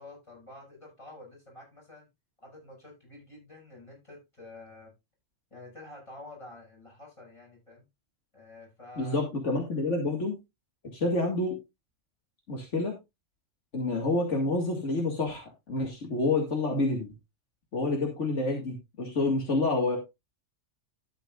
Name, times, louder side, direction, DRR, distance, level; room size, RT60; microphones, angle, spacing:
voice 1, 0.0-2.1 2.4-4.9 5.5-7.8 8.3-9.3, left 2 dB, 25° left, -3 dB, 7.1 m, -49 dB
voice 2, 9.0-10.3 10.9-11.6 12.5-12.9 13.7-17.1 17.7-20.0, left 2 dB, 75° left, 1 dB, 2.4 m, -28 dB
12.5 x 9.0 x 2.5 m, 0.23 s
omnidirectional pair, 1.3 m